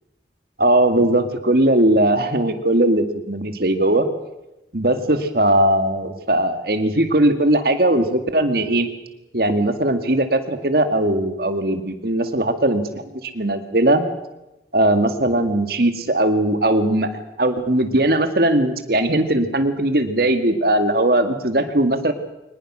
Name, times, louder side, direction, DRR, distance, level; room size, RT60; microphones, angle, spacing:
voice 1, 0.6-4.1 4.7-8.9 9.3-14.0 14.7-17.1 17.4-22.1, right 1 dB, 55° right, 8 dB, 2.0 m, -19 dB
23.5 x 20.0 x 6.3 m, 0.95 s
head